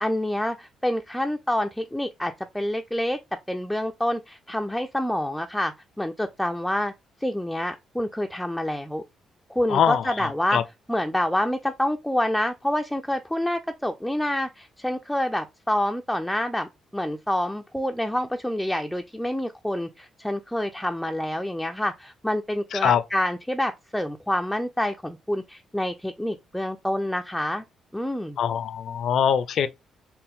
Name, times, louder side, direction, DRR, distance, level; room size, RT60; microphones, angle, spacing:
voice 1, 0.0-3.2 3.5-6.9 7.2-9.0 9.5-10.6 10.9-27.6 27.9-28.4, left 1 dB, 5° left, 0.3 m, -27 dB
voice 2, 9.7-10.6 22.7-23.0 28.4-29.7, left 8 dB, 70° left, 0.4 m, -23 dB
4.2 x 2.1 x 3.5 m
cardioid pair, 90°, 0 cm